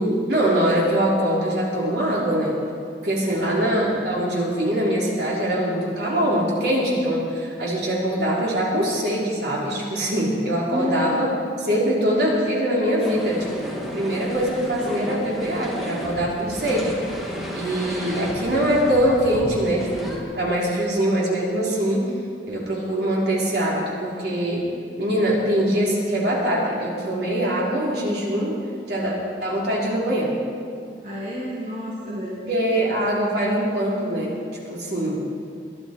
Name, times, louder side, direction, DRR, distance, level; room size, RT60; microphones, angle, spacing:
voice 1, 0.0-2.5 3.0-11.3 11.6-16.9 17.5-22.0 22.5-24.7 25.0-28.6 28.9-30.3 32.5-34.3 34.7-35.2, right 1 dB, 65° right, -4 dB, 3.5 m, -23 dB
voice 2, 3.2-3.6 10.7-11.3 31.0-32.5, equal, 45° right, -7 dB, 2.5 m, -30 dB
sound 1, 13.0-20.2, equal, ahead, 1.9 m, -33 dB
22.0 x 11.0 x 4.5 m, 2.4 s
head